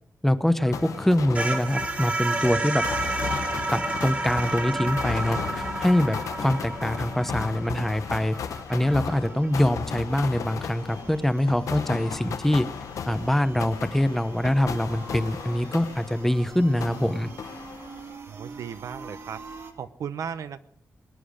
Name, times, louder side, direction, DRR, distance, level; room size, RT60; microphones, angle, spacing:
voice 1, 0.2-2.8 3.7-8.4 8.7-12.7 13.1-17.3, left 1 dB, 5° left, 12 dB, 0.7 m, -24 dB
sound 1, 0.6-9.5, right 2 dB, 25° right, 1.9 m, -31 dB
sound 2, 0.7-16.5 16.8-18.2, left 7 dB, 80° left, 0.9 m, -35 dB
sound 3, 1.2-19.7, right 4 dB, 55° right, 2.0 m, -47 dB
voice 2, 18.3-20.6, right 7 dB, 80° right, 12 dB, 0.8 m, -36 dB
21.0 x 10.0 x 5.0 m, 0.74 s
wide cardioid pair, 140°, 6 cm